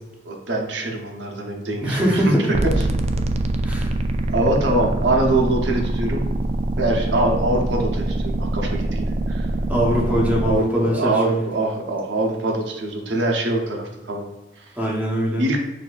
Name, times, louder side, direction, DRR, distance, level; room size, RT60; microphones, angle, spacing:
voice 1, 0.3-2.3 4.3-6.2 6.8-9.5 10.1-14.3 14.6-14.7 15.4-15.6, right 2 dB, 90° right, 1 dB, 0.8 m, -24 dB
voice 2, 1.8-2.6 3.6-3.9 9.7-11.5 14.8-15.5, equal, 10° right, -3 dB, 0.9 m, -22 dB
sound 1, 2.5-10.6, right 1 dB, 40° right, 0.3 m, -24 dB
6.3 x 2.7 x 2.4 m, 1.0 s
head